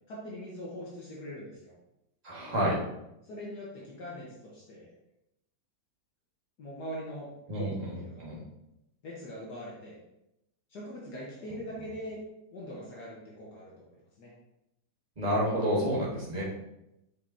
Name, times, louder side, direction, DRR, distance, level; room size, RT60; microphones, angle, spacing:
voice 1, 0.1-1.7 3.3-4.9 6.6-8.3 9.0-10.0 10.7-12.2 12.5-14.3 16.3-16.4, equal, 65° left, -5 dB, 1.8 m, -42 dB
voice 2, 2.2-2.8 7.5-8.4 15.2-16.4, equal, 25° right, -6 dB, 1.8 m, -29 dB
7.4 x 5.2 x 2.8 m, 0.86 s
omnidirectional pair, 1.9 m